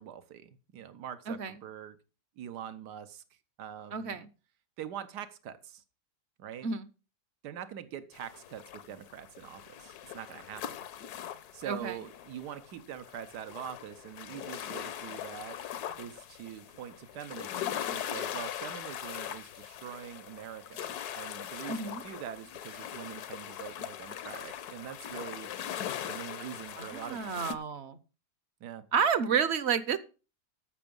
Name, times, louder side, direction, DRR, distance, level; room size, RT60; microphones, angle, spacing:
voice 1, 0.0-2.0 2.4-4.2 4.8-5.8 6.4-6.7 7.4-10.8 11.5-15.6 16.0-20.9 21.1-25.5 26.1-27.6 28.6-28.8, right 10 dB, 90° right, 12 dB, 1.5 m, -44 dB
voice 2, 3.9-4.3 6.6-6.9 11.7-12.0 21.7-22.0 26.8-28.0 28.9-30.0, right 6 dB, 55° right, 15 dB, 0.8 m, -30 dB
sound 1, 8.1-27.6, left 10 dB, 75° left, 1.2 m, -41 dB
13.5 x 6.1 x 5.3 m, 0.34 s
omnidirectional pair, 1.7 m